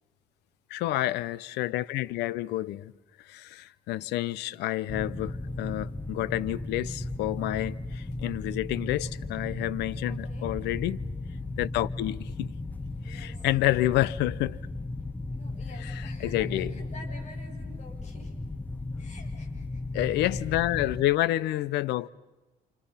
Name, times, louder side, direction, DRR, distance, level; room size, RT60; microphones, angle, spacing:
voice 1, 0.7-2.9 3.2-11.0 11.6-12.5 13.0-14.6 15.8-16.7 19.9-22.1, left 15 dB, 85° left, 0.8 m, -29 dB
sound 1, 4.9-21.1, left 2 dB, 10° left, 0.9 m, -36 dB
voice 2, 10.0-10.5 13.0-13.4 15.2-18.3 19.0-19.8 20.4-20.6, left 2 dB, 40° left, 7.7 m, -49 dB
29.0 x 28.0 x 5.7 m
cardioid pair, 110°, 17 cm